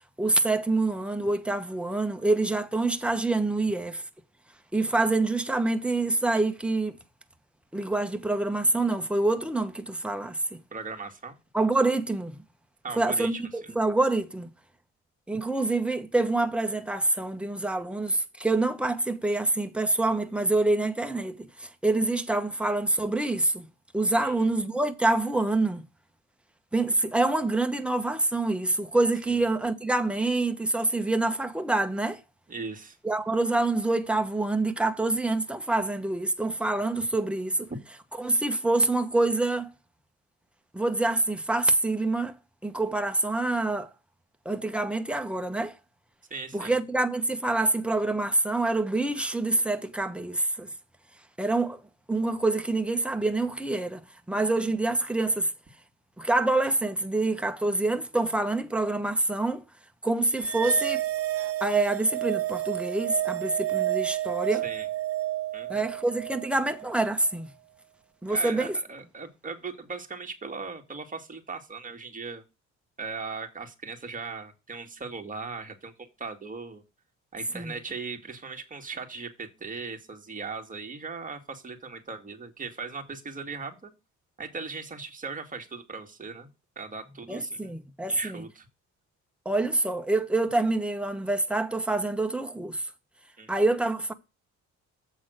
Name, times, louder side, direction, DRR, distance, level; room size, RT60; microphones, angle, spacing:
voice 1, 0.2-4.0 4.7-7.0 7.7-10.6 11.5-12.4 13.0-14.5 15.3-23.7 23.9-25.8 26.7-32.2 33.0-37.7 38.2-39.7 40.7-42.3 42.6-43.9 44.4-45.7 46.5-50.7 51.4-51.8 52.1-54.0 54.3-55.5 56.2-59.6 60.0-61.0 61.6-64.6 65.7-67.5 68.2-68.8 77.5-77.8 87.3-88.4 89.4-92.8 93.5-94.1, right 2 dB, 5° right, 1.1 m, -26 dB
voice 2, 10.7-11.4 12.8-13.4 24.2-24.4 29.3-29.4 32.5-33.0 37.7-37.8 46.3-46.7 64.5-64.9 65.5-65.9 68.3-72.4 73.0-76.8 77.3-83.9 84.4-86.5 86.8-87.7 88.1-88.7 93.4-93.5, right 4 dB, 25° right, 2.1 m, -38 dB
sound 1, 60.4-67.0, right 14 dB, 50° right, 0.7 m, -30 dB
7.8 x 4.0 x 6.4 m
cardioid pair, 90°, 30 cm